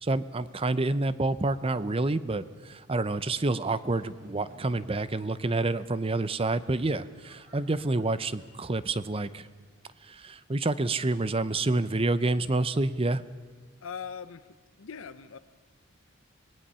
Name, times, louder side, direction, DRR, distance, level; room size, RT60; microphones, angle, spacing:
voice 1, 0.0-9.5 10.0-13.2, right 2 dB, 25° right, 15 dB, 0.6 m, -28 dB
sound 1, 3.5-9.9, equal, 90° right, 6.9 m, -58 dB
voice 2, 13.8-14.5 14.8-15.4, left 6 dB, 65° left, 12 dB, 0.6 m, -40 dB
25.5 x 19.5 x 5.6 m, 1.4 s
head